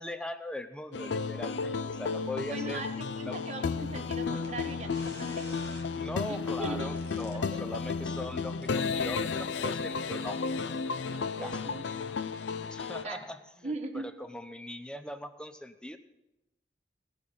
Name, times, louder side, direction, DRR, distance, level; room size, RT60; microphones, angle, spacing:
voice 1, 0.0-2.8 3.3-3.4 5.9-10.4 11.4-11.6 12.7-13.4 13.6-16.0, left 1 dB, 5° left, 8 dB, 0.6 m, -40 dB
sound 1, 0.9-13.0, left 5 dB, 85° left, 0.4 m, -33 dB
voice 2, 2.3-5.6 6.3-7.0 7.5-7.6 10.2-10.5 11.1-11.9 13.0-13.2 13.6-14.1, right 2 dB, 40° right, 3 dB, 1.4 m, -40 dB
sound 2, 4.4-4.5 4.9-5.9 7.0-7.4 8.6-8.9, left 2 dB, 70° left, 1.6 m, -49 dB
18.0 x 6.5 x 5.5 m, 0.97 s
head